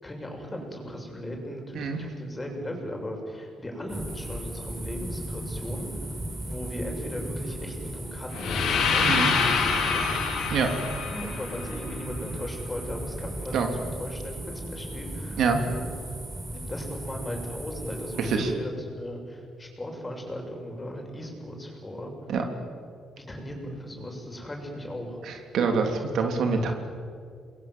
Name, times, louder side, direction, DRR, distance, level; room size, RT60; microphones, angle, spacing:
voice 1, 0.0-6.1 6.4-10.2 11.1-14.4 14.7-15.4 15.7-15.8 16.5-22.1 23.2-25.2, equal, 20° left, 1 dB, 7.0 m, -37 dB
sound 1, 3.9-18.4, right 1 dB, 25° right, 7.8 m, -37 dB
sound 2, 8.3-12.4, left 5 dB, 80° left, 4.7 m, -26 dB
voice 2, 9.0-9.3 10.5-10.7 13.5-13.7 15.4-15.6 18.2-18.5 22.3-22.4 25.2-26.7, right 5 dB, 70° right, 4 dB, 3.3 m, -25 dB
28.0 x 21.5 x 7.7 m, 2.3 s
cardioid pair, 90°, 0 cm